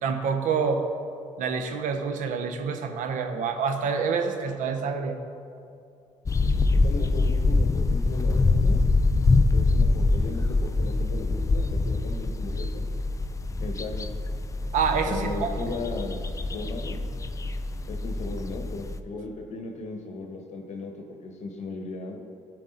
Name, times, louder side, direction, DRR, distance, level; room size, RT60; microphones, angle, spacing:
voice 1, 0.0-0.8 1.4-5.2 14.7-15.5, right 5 dB, 70° right, 7 dB, 0.8 m, -27 dB
sound 1, 6.3-19.0, left 3 dB, 25° left, 0.5 m, -24 dB
voice 2, 6.7-8.8 9.5-12.8 13.6-14.1 15.1-17.0 17.9-22.2, left 3 dB, 60° left, 2 dB, 0.9 m, -37 dB
12.5 x 4.6 x 3.9 m, 2.5 s
supercardioid pair, 60°, 14 cm